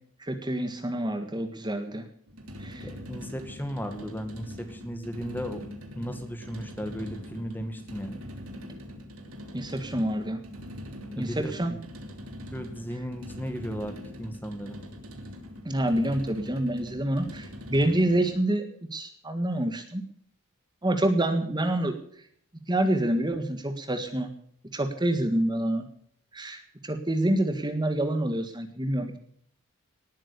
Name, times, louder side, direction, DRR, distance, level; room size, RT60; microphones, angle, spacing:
voice 1, 0.2-2.1 2.6-2.9 9.5-10.4 11.1-11.7 15.6-20.0 20.8-21.9 22.7-24.3 24.7-25.9 26.3-29.2, right 1 dB, 20° right, 7 dB, 1.7 m, -27 dB
sound 1, 2.3-18.4, equal, 85° right, 3.2 m, -43 dB
voice 2, 2.8-5.6 5.9-8.2 11.2-11.8 12.5-14.8, equal, 10° left, 6 dB, 1.9 m, -36 dB
19.0 x 9.1 x 6.9 m, 0.63 s
head